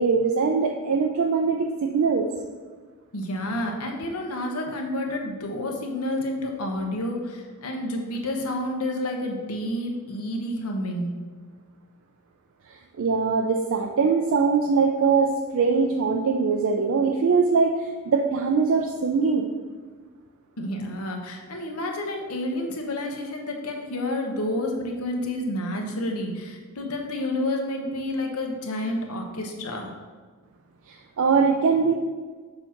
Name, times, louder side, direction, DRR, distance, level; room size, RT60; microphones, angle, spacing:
voice 1, 0.0-2.3 12.7-19.5 30.9-31.9, right 5 dB, 65° right, 2 dB, 0.4 m, -22 dB
voice 2, 3.1-11.1 20.6-29.9, left 1 dB, 80° left, 2 dB, 1.0 m, -29 dB
6.9 x 2.9 x 5.7 m, 1.5 s
head